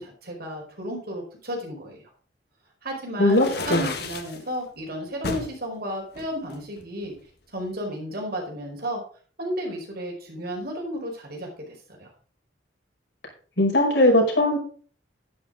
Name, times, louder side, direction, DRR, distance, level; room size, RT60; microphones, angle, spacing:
voice 1, 0.0-2.0 2.8-7.1 7.5-9.0 9.4-12.1, equal, 60° right, 1 dB, 5.0 m, -33 dB
voice 2, 3.2-3.8 13.6-14.6, left 1 dB, 85° left, -1 dB, 5.6 m, -19 dB
sound 1, 3.3-4.4 5.2-5.5 6.1-7.2, left 3 dB, 65° left, 1.6 m, -32 dB
11.0 x 10.5 x 3.9 m, 0.44 s
head